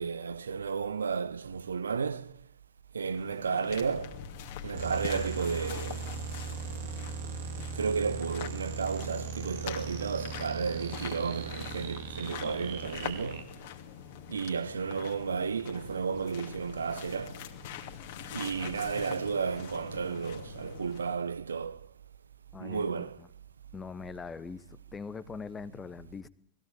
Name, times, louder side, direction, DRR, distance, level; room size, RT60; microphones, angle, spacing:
voice 1, 0.0-2.4 2.9-4.2 4.6-6.2 7.7-13.5 14.3-17.4 18.3-21.8 22.6-23.2, right 5 dB, 70° right, 0.9 m, -33 dB
sound 1, 3.0-21.2, left 9 dB, 50° left, 2.5 m, -44 dB
sound 2, 4.7-13.4, right 6 dB, 55° right, 2.6 m, -39 dB
voice 2, 22.5-23.3 23.7-26.3, left 5 dB, 15° left, 1.0 m, -42 dB
20.5 x 15.5 x 8.7 m
figure-of-eight pair, 90°, 0 cm